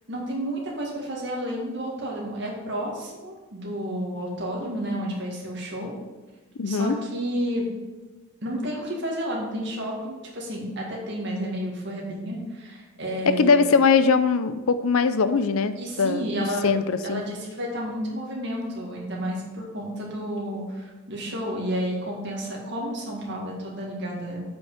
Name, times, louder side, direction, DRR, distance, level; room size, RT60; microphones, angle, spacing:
voice 1, 0.1-5.9 6.6-7.7 8.4-13.6 15.8-16.7 17.0-24.4, equal, 55° right, -3 dB, 2.0 m, -31 dB
voice 2, 6.6-6.9 13.4-16.3 16.6-17.2, left 5 dB, 75° left, 11 dB, 0.5 m, -21 dB
7.9 x 5.4 x 5.0 m, 1.3 s
head